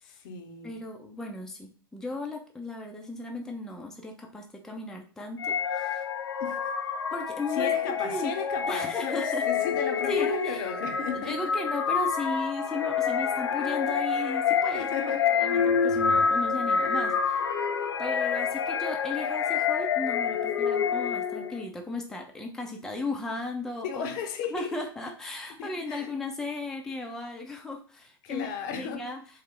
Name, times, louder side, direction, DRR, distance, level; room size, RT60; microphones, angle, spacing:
voice 1, 0.1-0.8 5.5-5.6 6.4-6.6 7.5-11.5 14.7-15.3 23.8-24.7 25.6-26.1 28.2-29.0, left 6 dB, 50° left, 0.7 m, -35 dB
voice 2, 0.6-6.0 7.1-7.7 8.0-8.3 8.7-9.5 10.1-10.6 11.1-14.9 15.3-17.4 18.0-24.0 24.5-28.5 28.8-29.2, left 2 dB, 5° left, 0.5 m, -36 dB
sound 1, 5.4-21.6, left 6 dB, 80° left, 0.5 m, -27 dB
3.7 x 2.1 x 3.6 m
hypercardioid pair, 100°, 13 cm